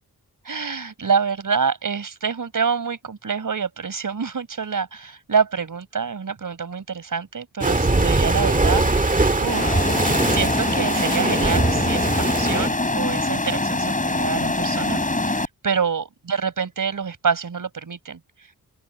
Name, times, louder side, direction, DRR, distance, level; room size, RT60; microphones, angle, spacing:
voice 1, 0.4-9.8 10.3-18.5, right 6 dB, 60° right, 5.0 m, -27 dB
sound 1, 7.6-12.7, right 2 dB, 20° right, 1.7 m, -21 dB
sound 2, 9.5-15.5, left 2 dB, 20° left, 7.0 m, -23 dB
open air
wide cardioid pair, 150°, 36 cm